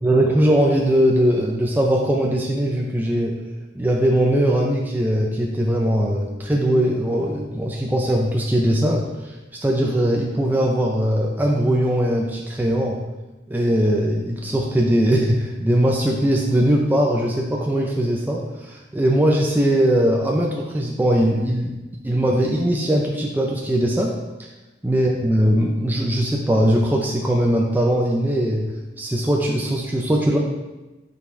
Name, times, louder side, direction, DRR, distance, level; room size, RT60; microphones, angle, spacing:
voice 1, 0.0-3.4 3.7-9.3 9.6-13.0 13.5-21.7 22.0-24.1 24.4-24.5 24.8-30.4, right 1 dB, 10° right, -1 dB, 0.4 m, -20 dB
5.8 x 4.1 x 4.4 m, 1.1 s
head